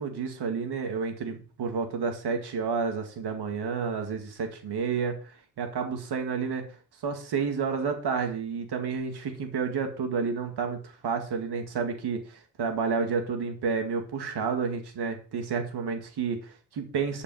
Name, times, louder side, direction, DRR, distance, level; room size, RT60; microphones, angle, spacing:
voice 1, 0.0-6.6 7.0-17.2, right 5 dB, 60° right, 5 dB, 2.5 m, -30 dB
11.0 x 5.5 x 7.3 m, 0.36 s
cardioid pair, 95°, 44 cm